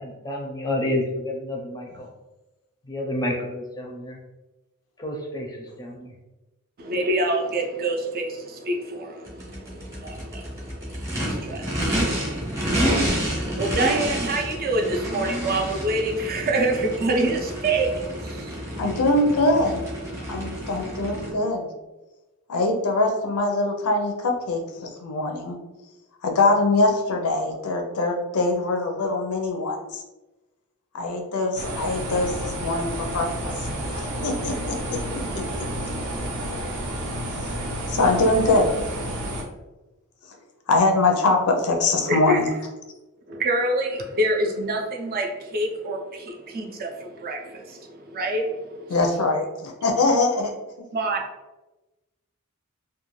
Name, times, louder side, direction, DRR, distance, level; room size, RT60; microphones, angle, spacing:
voice 1, 0.0-2.1 2.9-4.2 5.0-6.1, left 1 dB, 15° left, 0 dB, 0.5 m, -29 dB
voice 2, 6.8-19.0 42.1-42.4 43.3-49.0 50.9-51.2, right 2 dB, 45° right, 3 dB, 0.4 m, -27 dB
Race car auto racing / Idling / Accelerating revving vroom, 9.3-21.3, equal, 15° right, 0.7 m, -29 dB
voice 3, 18.8-19.8 20.3-21.7 22.5-25.6 26.2-30.0 30.9-35.0 35.3-35.4 37.4-37.5 37.9-38.7 40.7-42.5 48.9-50.5, left 2 dB, 90° left, 3 dB, 0.5 m, -23 dB
sound 1, 31.6-39.4, right 1 dB, 90° right, 0.6 m, -30 dB
2.4 x 2.3 x 3.0 m, 1.1 s
head